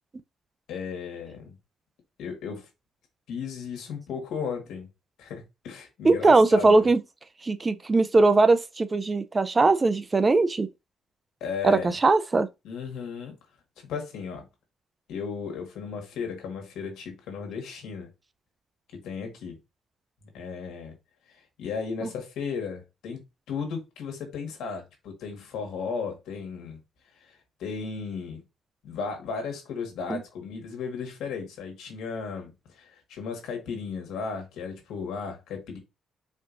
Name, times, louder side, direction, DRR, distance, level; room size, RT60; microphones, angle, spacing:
voice 1, 0.7-1.5 2.2-2.7 3.3-4.9 5.2-6.9 11.4-11.9 12.6-13.3 13.8-14.5 15.1-18.1 18.9-19.6 20.3-20.9 21.3-26.8 27.2-28.4 28.8-35.8, left 5 dB, 85° left, 1.5 m, -35 dB
voice 2, 6.0-7.0 7.4-10.7 11.6-12.5 22.0-22.1 30.1-30.2, right 3 dB, 25° right, 0.4 m, -20 dB
4.3 x 2.8 x 2.5 m
cardioid pair, 90°, 0 cm